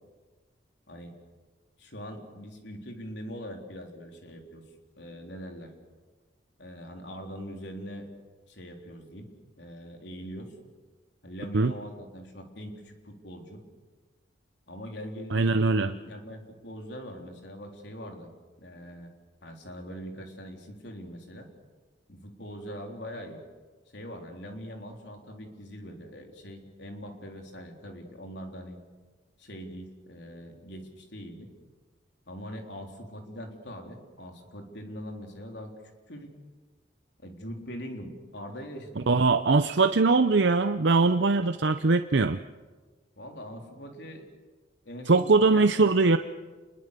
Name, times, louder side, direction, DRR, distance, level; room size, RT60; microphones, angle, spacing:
voice 1, 1.8-4.6 5.0-5.7 6.6-8.1 8.5-9.3 9.6-10.5 11.2-13.6 14.7-18.3 18.6-19.1 19.4-21.5 22.1-23.4 23.9-28.8 29.4-31.5 32.3-35.7 36.1-36.3 37.2-39.2 43.2-44.3 44.9-45.9, equal, 70° left, 2 dB, 3.9 m, -42 dB
voice 2, 15.3-15.9 39.0-42.4 45.1-46.2, right 3 dB, 70° right, 9 dB, 0.7 m, -21 dB
28.5 x 21.5 x 6.8 m, 1.3 s
head